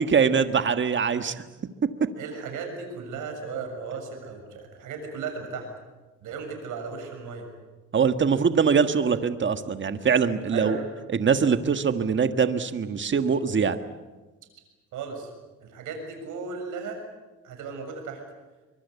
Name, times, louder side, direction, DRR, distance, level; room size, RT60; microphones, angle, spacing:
voice 1, 0.0-1.3 7.9-10.8 11.1-13.8, right 6 dB, 40° right, 9 dB, 1.6 m, -23 dB
voice 2, 2.2-5.7 6.2-7.5 10.5-10.9 14.9-15.3 15.6-17.0 17.4-18.2, right 5 dB, 85° right, 4 dB, 6.9 m, -35 dB
24.5 x 22.5 x 8.4 m, 1.2 s
cardioid pair, 90°, 30 cm